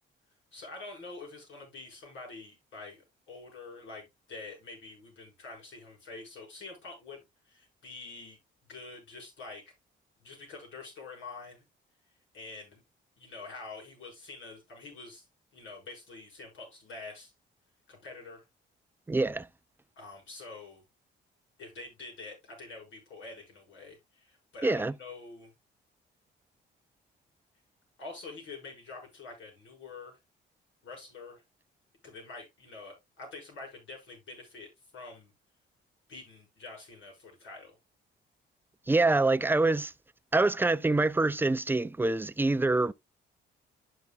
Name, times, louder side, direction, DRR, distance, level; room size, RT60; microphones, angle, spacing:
voice 1, 0.5-8.4 8.7-9.6 10.2-11.7 12.3-12.8 13.2-15.2 15.5-17.3 17.9-18.4 20.0-20.8 21.6-25.5 28.0-30.2 30.8-31.4 32.0-35.3 36.1-37.7, left 3 dB, 70° left, 6.3 m, -46 dB
voice 2, 19.1-19.5 24.6-24.9 38.9-39.9 40.3-42.9, right 2 dB, 10° right, 0.4 m, -25 dB
12.0 x 6.1 x 2.4 m
cardioid pair, 90°, 20 cm